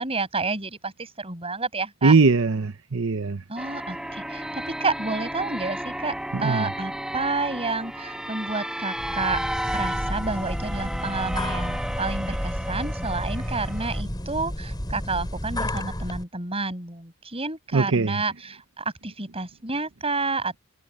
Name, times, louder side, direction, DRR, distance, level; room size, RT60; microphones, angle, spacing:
voice 1, 0.0-2.1 3.5-6.1 6.4-9.4 9.7-20.6, right 3 dB, 25° right, 6.3 m, -30 dB
voice 2, 2.0-3.4 6.3-6.7 17.7-18.2, right 4 dB, 65° right, 0.8 m, -21 dB
sound 1, 3.6-14.0, right 1 dB, 5° right, 1.3 m, -33 dB
sound 2, 8.9-16.2, equal, 20° left, 6.2 m, -31 dB
head